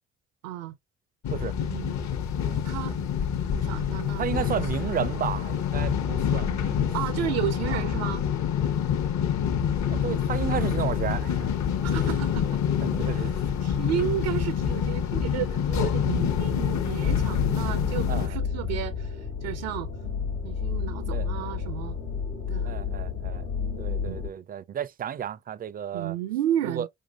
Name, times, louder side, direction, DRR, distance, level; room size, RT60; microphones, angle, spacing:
voice 1, 0.4-0.7 1.6-2.0 2.6-3.1 3.5-4.2 6.9-8.2 11.8-12.6 13.0-19.9 20.4-22.0 22.5-22.7 24.0-24.2 25.9-26.9, right 12 dB, 75° right, 0.5 m, -32 dB
sound 1, 1.2-18.3, left 8 dB, 50° left, 0.8 m, -27 dB
voice 2, 4.2-6.9 7.1-7.2 7.7-7.8 9.9-11.5 12.8-13.3 18.1-18.4 21.1-21.3 22.6-23.5 23.8-26.2 26.6-26.9, right 9 dB, 25° right, 0.4 m, -32 dB
sound 2, 17.0-24.3, left 6 dB, 85° left, 1.2 m, -30 dB
4.7 x 3.4 x 2.3 m
hypercardioid pair, 45°, 37 cm